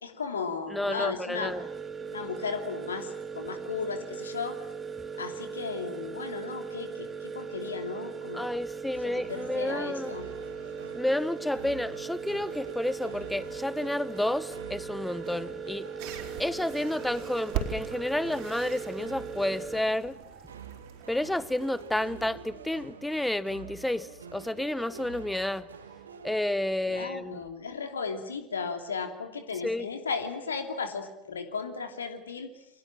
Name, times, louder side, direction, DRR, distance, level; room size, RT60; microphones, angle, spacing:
voice 1, 0.0-1.5 2.1-4.6 5.2-8.5 9.0-10.3 26.9-32.5, left 5 dB, 75° left, 2.9 m, -35 dB
voice 2, 0.7-1.7 8.3-10.2 10.9-15.9 16.4-20.2 21.1-25.7 26.2-27.4 29.6-29.9, left 1 dB, 5° left, 1.0 m, -30 dB
sound 1, 1.3-19.8, right 6 dB, 20° right, 2.9 m, -39 dB
sound 2, 8.9-27.1, right 6 dB, 75° right, 2.4 m, -47 dB
sound 3, 16.0-22.3, right 8 dB, 55° right, 4.3 m, -41 dB
29.0 x 24.0 x 7.5 m
figure-of-eight pair, 70°, 0 cm